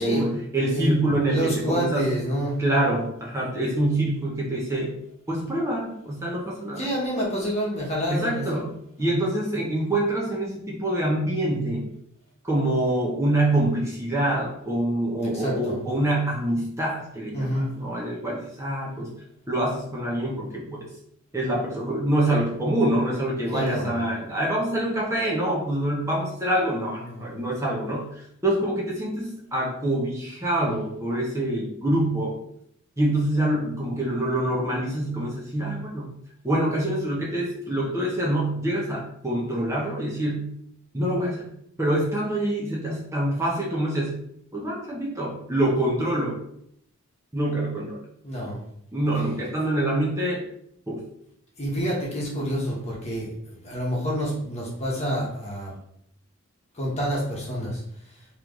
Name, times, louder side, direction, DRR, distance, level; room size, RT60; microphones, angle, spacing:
voice 1, 0.0-2.1 2.6-5.0 5.3-6.9 8.1-8.7 9.0-11.9 12.4-19.1 19.5-20.8 21.3-32.4 33.0-36.1 36.4-40.5 40.9-41.5 41.8-44.2 44.5-46.4 47.3-48.0 48.9-50.4 50.9-51.0, right 1 dB, 15° right, -5 dB, 0.8 m, -25 dB
voice 2, 0.6-2.6 6.8-8.7 9.0-9.2 15.2-15.8 17.3-17.7 23.5-24.0 27.0-27.4 48.2-48.6 51.6-55.7 56.7-57.8, equal, 30° left, -4 dB, 1.2 m, -28 dB
3.2 x 3.0 x 3.7 m, 0.72 s
head